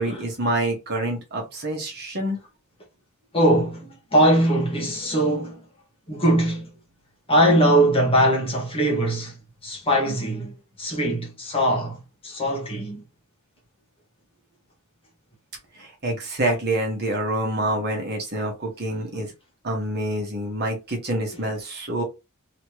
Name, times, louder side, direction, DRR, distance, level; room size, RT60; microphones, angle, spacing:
voice 1, 0.0-2.4 15.8-19.3 19.6-22.0, right 1 dB, 50° right, 1.4 m, -27 dB
voice 2, 3.3-5.6 6.1-6.7 7.3-9.4 9.6-10.5 10.8-13.0 21.3-21.4, right 1 dB, 25° left, 1.5 m, -21 dB
3.1 x 3.0 x 3.1 m
head